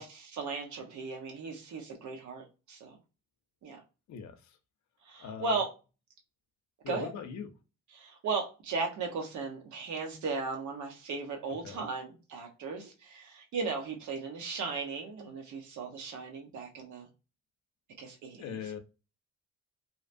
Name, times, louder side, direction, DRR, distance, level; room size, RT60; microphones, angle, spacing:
voice 1, 0.0-3.0 3.6-3.8 5.1-5.7 6.9-7.1 7.9-17.1 18.0-18.6, right 4 dB, 70° right, 0.9 m, -36 dB
voice 2, 4.1-4.6 5.2-5.6 6.8-7.5 11.6-11.8 18.4-18.8, left 7 dB, 65° left, 0.6 m, -40 dB
2.8 x 2.2 x 2.5 m
cardioid pair, 90°, 30 cm